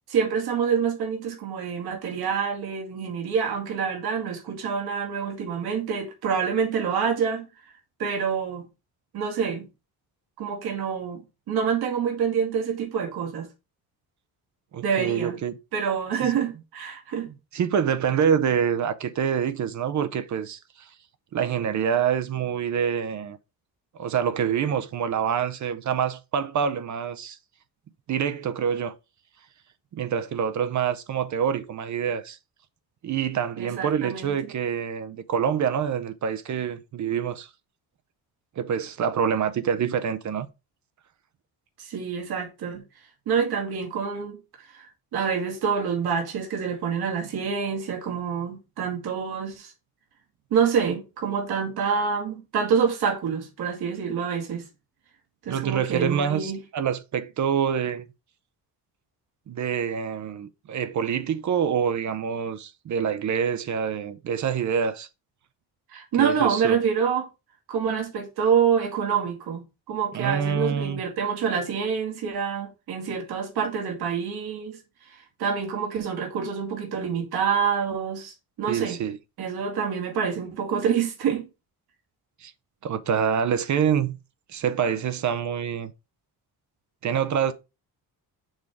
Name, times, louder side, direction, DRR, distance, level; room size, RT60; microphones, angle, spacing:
voice 1, 0.1-7.4 8.0-8.6 9.1-9.7 10.4-13.5 14.8-15.4 15.7-17.3 33.6-34.3 41.8-42.8 43.3-49.7 50.5-54.7 55.5-56.6 65.9-67.3 67.7-74.8 75.1-79.0 79.4-81.5, right 7 dB, 75° right, 2.1 m, -27 dB
voice 2, 14.7-15.6 16.2-16.3 17.5-20.6 21.3-23.4 24.0-27.4 28.1-28.9 29.9-32.4 33.0-37.5 38.6-40.5 55.5-58.0 59.5-65.1 66.2-66.8 70.1-71.0 78.7-79.2 82.4-82.5 82.8-84.2 84.5-85.9 87.0-87.5, right 7 dB, 50° right, 0.7 m, -26 dB
6.4 x 3.6 x 4.7 m
cardioid pair, 145°, 38 cm